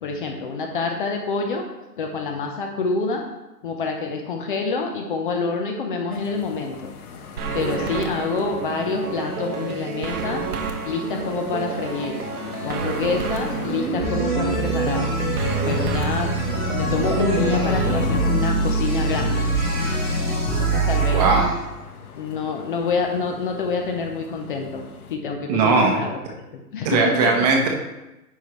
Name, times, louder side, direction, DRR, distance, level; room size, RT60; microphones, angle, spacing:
voice 1, 0.0-1.6 2.0-3.2 3.6-6.9 7.5-10.4 10.8-12.2 12.6-15.1 15.6-16.3 16.7-19.4 20.6-21.2 22.2-24.8 25.1-26.2 26.5-27.3, left 4 dB, 35° left, 3 dB, 0.7 m, -27 dB
sound 1, 6.1-25.1, left 7 dB, 65° left, 1.2 m, -33 dB
sound 2, 7.4-18.0, right 5 dB, 70° right, 1.1 m, -29 dB
sound 3, 14.0-21.5, right 4 dB, ahead, 0.4 m, -24 dB
voice 2, 21.1-21.5 25.5-26.0 26.8-27.7, right 4 dB, 25° right, 1 dB, 1.0 m, -18 dB
9.6 x 5.5 x 3.1 m, 1.0 s
hypercardioid pair, 150°, 47 cm